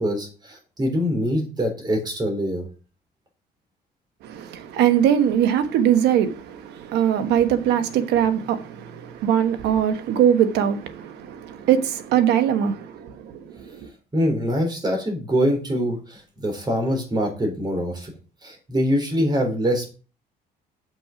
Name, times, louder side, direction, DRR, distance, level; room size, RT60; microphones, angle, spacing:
voice 1, 0.0-2.7 14.1-18.1 18.4-19.9, equal, 25° right, 3.8 m, -24 dB
voice 2, 4.2-13.7, right 9 dB, 80° right, 1.2 m, -21 dB
7.4 x 6.1 x 5.9 m
cardioid pair, 110°, 17 cm